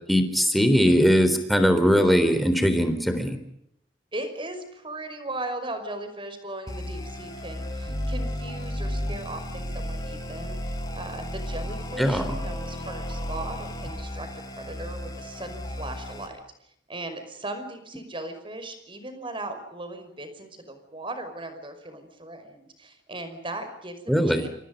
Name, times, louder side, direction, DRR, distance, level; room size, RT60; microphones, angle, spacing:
voice 1, 0.1-3.4 12.0-12.4 24.1-24.5, equal, ahead, 8 dB, 3.7 m, -20 dB
voice 2, 4.1-16.4 16.9-24.5, right 2 dB, 30° right, 8 dB, 5.5 m, -38 dB
sound 1, 6.7-16.3, equal, 20° left, 5.7 m, -33 dB
29.0 x 26.0 x 5.3 m, 0.77 s
head